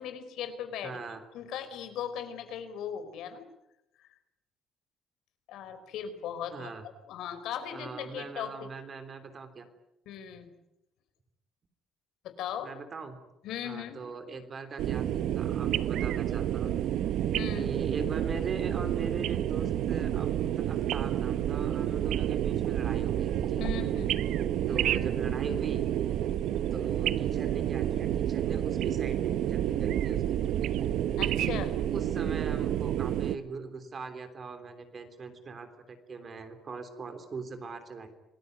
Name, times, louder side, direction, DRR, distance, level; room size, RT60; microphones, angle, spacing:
voice 1, 0.0-1.0 1.3-3.4 4.0-4.1 5.5-6.7 7.1-8.7 10.1-10.5 12.2-12.7 13.4-14.0 17.3-17.7 23.6-24.2 31.2-31.7, left 9 dB, 70° left, 9 dB, 4.5 m, -38 dB
voice 2, 0.8-1.2 6.5-6.8 7.7-9.6 12.6-13.2 13.6-16.8 17.5-20.3 20.5-23.7 24.7-25.9 26.7-30.6 31.9-38.1, right 4 dB, 30° right, 8 dB, 3.3 m, -40 dB
sound 1, 14.8-33.4, right 11 dB, 60° right, 1.0 m, -29 dB
27.5 x 20.5 x 9.4 m, 0.89 s
cardioid pair, 170°, 0 cm